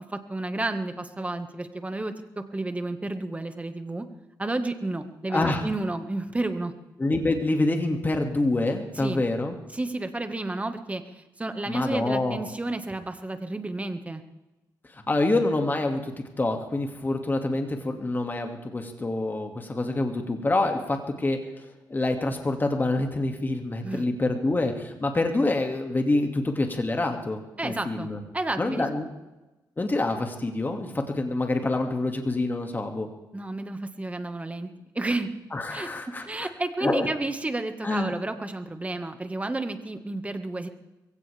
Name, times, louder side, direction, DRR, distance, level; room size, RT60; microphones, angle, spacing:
voice 1, 0.1-4.0 4.4-6.7 8.9-9.2 9.7-14.2 23.8-24.1 27.6-28.1 28.3-29.0 33.3-34.7 34.9-35.3 35.7-35.9 36.2-40.7, right 2 dB, 20° right, 7 dB, 1.7 m, -31 dB
voice 2, 5.3-5.6 7.0-9.6 11.7-12.4 14.9-21.4 21.9-28.2 28.6-29.1 29.8-33.1 35.5-36.5 36.8-37.1 37.8-38.1, left 2 dB, 25° left, 4 dB, 2.3 m, -26 dB
22.0 x 16.5 x 3.5 m, 1.0 s
cardioid pair, 75°, 7 cm